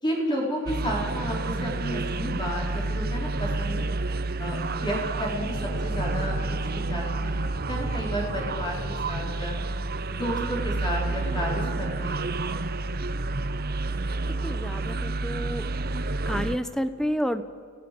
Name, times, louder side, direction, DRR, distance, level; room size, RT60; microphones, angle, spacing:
voice 1, 0.0-3.8 4.4-9.6 10.1-12.3, equal, 20° left, -2 dB, 4.7 m, -32 dB
sound 1, 0.7-16.6, right 2 dB, 45° right, 0.8 m, -29 dB
voice 2, 14.4-15.6 16.3-17.4, equal, ahead, 12 dB, 1.0 m, -29 dB
29.0 x 17.0 x 7.9 m, 2.1 s
head